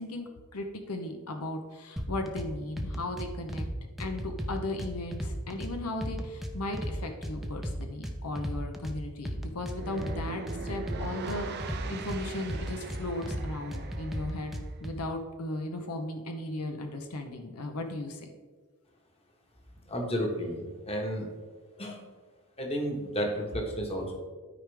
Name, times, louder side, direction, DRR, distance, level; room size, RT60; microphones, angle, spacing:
voice 1, 0.0-3.7 4.0-14.5 14.8-18.3, left 2 dB, 90° left, 5 dB, 0.9 m, -36 dB
sound 1, 2.0-2.5 2.8-3.7 4.0-5.7 6.0-6.9 7.2-9.0 9.2-10.2 10.5-12.2 12.5-13.4 13.7-14.9, equal, ahead, 0.7 m, -35 dB
sound 2, 9.7-14.8, right 4 dB, 50° right, 0.6 m, -41 dB
voice 2, 19.9-21.2 21.8-22.0 22.6-24.2, equal, 25° left, 1 dB, 1.4 m, -32 dB
12.5 x 5.0 x 3.4 m, 1.5 s
head